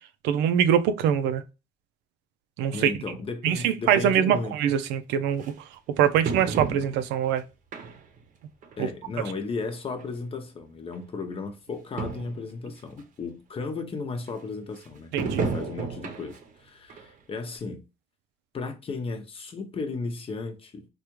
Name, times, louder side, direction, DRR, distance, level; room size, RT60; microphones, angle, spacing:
voice 1, 0.2-1.4 2.6-2.9 3.4-5.4 6.0-7.4 8.8-8.9 15.1-15.4, right 9 dB, 90° right, 0.4 m, -23 dB
voice 2, 2.7-4.5 8.8-17.8 18.5-20.9, left 4 dB, 35° left, 0.7 m, -35 dB
sound 1, 4.3-4.4 5.4-5.5 6.3-7.2 7.7-8.2 8.6-8.8 9.7-9.8 10.0-10.1 10.9-11.0 11.3-11.4 11.7-11.8 12.0-12.4 13.0-13.1 15.2-16.5 16.9-17.1 17.6-17.7, right 5 dB, 50° right, 0.7 m, -32 dB
3.4 x 2.3 x 3.0 m
cardioid pair, 110°, 17 cm